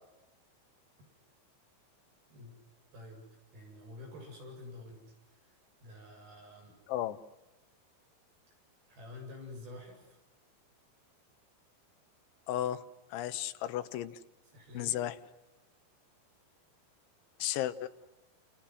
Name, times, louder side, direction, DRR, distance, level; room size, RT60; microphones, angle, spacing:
voice 1, 2.9-3.2 3.5-5.1 5.8-6.8 8.9-10.2 14.5-15.0, left 2 dB, 55° right, 1 dB, 9.7 m, -48 dB
voice 2, 12.5-12.8 13.1-14.2 14.8-15.2 17.4-17.9, left 12 dB, 85° left, 10 dB, 3.4 m, -34 dB
28.5 x 28.5 x 6.4 m, 1.0 s
omnidirectional pair, 5.2 m